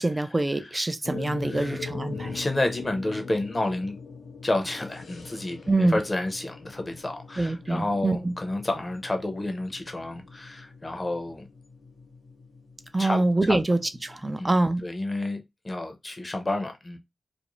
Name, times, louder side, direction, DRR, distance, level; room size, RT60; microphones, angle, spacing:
voice 1, 0.0-2.3 5.7-6.0 7.4-8.3 12.9-14.8, right 2 dB, 30° right, 0.4 m, -25 dB
sound 1, 1.0-14.4, left 4 dB, 90° left, 0.8 m, -42 dB
voice 2, 1.4-1.8 2.1-3.9 4.4-11.5 13.0-13.6 14.4-14.6 14.8-17.0, left 2 dB, 35° left, 0.6 m, -30 dB
2.5 x 2.1 x 3.0 m
cardioid pair, 45°, 0 cm